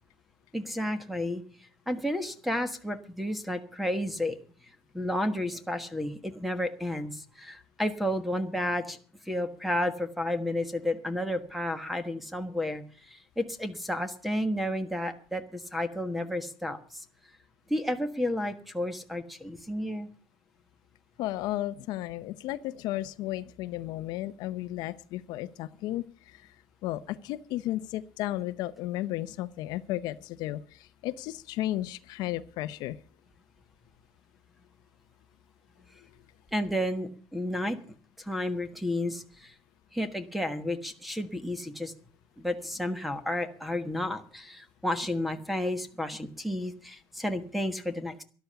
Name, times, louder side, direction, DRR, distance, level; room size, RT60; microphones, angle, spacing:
voice 1, 0.5-1.4 1.9-4.4 4.9-9.0 9.2-17.0 17.7-20.1 36.5-37.8 38.2-39.5 39.9-41.9 42.4-48.2, left 1 dB, ahead, 11 dB, 1.4 m, -31 dB
voice 2, 21.2-26.5 26.8-33.0, left 15 dB, 60° left, 13 dB, 0.7 m, -34 dB
13.0 x 11.5 x 6.9 m, 0.41 s
cardioid pair, 165°, 8 cm